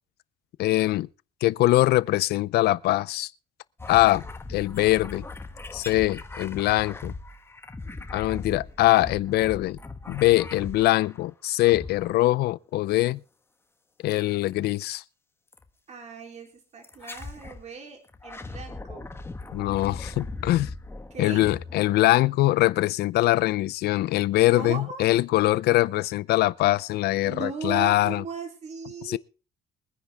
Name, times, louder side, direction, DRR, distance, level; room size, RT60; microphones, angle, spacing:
voice 1, 0.6-1.1 1.4-3.3 3.9-4.2 4.5-5.2 5.7-7.1 8.1-9.8 10.1-13.2 14.0-15.0 19.5-20.7 21.2-28.2 29.0-29.2, left 16 dB, 70° left, 0.6 m, -22 dB
sound 1, 3.8-11.2 11.6-12.4 14.1-14.5 15.5-15.7 16.8-17.6 18.1-22.4, left 3 dB, 15° left, 1.5 m, -39 dB
voice 2, 15.9-19.1 21.1-21.4 24.5-25.1 27.2-29.2, right 4 dB, 40° right, 3.4 m, -37 dB
23.5 x 9.8 x 3.5 m
cardioid pair, 110°, 17 cm